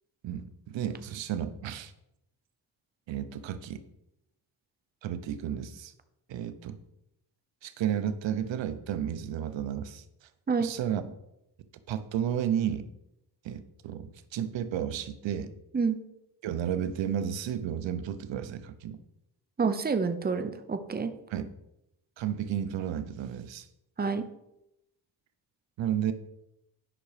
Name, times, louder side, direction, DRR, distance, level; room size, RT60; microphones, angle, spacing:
voice 1, 0.2-1.9 3.1-3.8 5.0-5.9 6.3-6.8 7.6-10.0 10.6-11.0 11.9-12.8 13.4-15.5 16.4-19.0 21.3-21.5 22.2-23.7 25.8-26.1, right 9 dB, 85° right, 11 dB, 0.9 m, -32 dB
voice 2, 19.6-21.1 24.0-24.2, right 5 dB, 20° right, 8 dB, 0.8 m, -28 dB
9.9 x 5.8 x 5.0 m, 0.84 s
cardioid pair, 105°, 43 cm